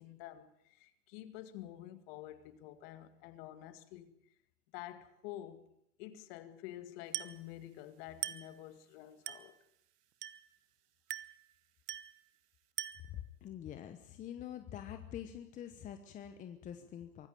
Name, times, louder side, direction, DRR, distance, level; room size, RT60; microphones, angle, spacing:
voice 1, 0.0-4.3 4.7-5.7 6.0-9.6, left 13 dB, 35° left, 2.1 m, -49 dB
Glass, 7.1-7.5 8.2-8.6 9.3-9.6 10.2-10.6 11.1-11.5 11.9-12.2 12.8-13.2, right 11 dB, 70° right, 1.3 m, -42 dB
voice 2, 13.1-17.3, left 10 dB, 15° left, 1.0 m, -46 dB
24.0 x 14.0 x 9.1 m
hypercardioid pair, 140°, 48 cm